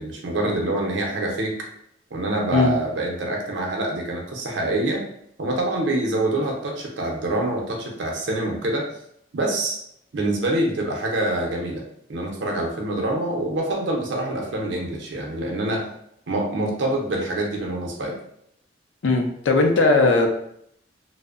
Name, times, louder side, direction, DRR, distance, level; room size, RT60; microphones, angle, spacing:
voice 1, 0.0-1.5 2.1-5.0 5.4-8.8 9.3-9.8 10.1-11.8 12.1-15.8 16.3-18.1, right 1 dB, 80° right, 0 dB, 0.5 m, -25 dB
voice 2, 19.0-20.3, left 3 dB, 85° left, 2 dB, 0.4 m, -18 dB
2.5 x 2.0 x 2.4 m, 0.71 s
head